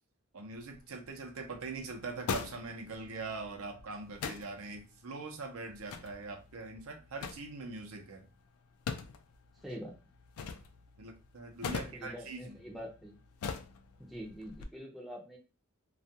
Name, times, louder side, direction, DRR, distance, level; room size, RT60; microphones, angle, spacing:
voice 1, 0.3-8.3 11.0-12.6, right 3 dB, 70° right, 3 dB, 0.6 m, -42 dB
sound 1, 0.5-14.6, left 6 dB, 80° left, 0.3 m, -44 dB
voice 2, 9.6-9.9 11.6-13.2 14.0-15.4, equal, ahead, -2 dB, 0.4 m, -45 dB
2.3 x 2.2 x 2.7 m, 0.30 s
head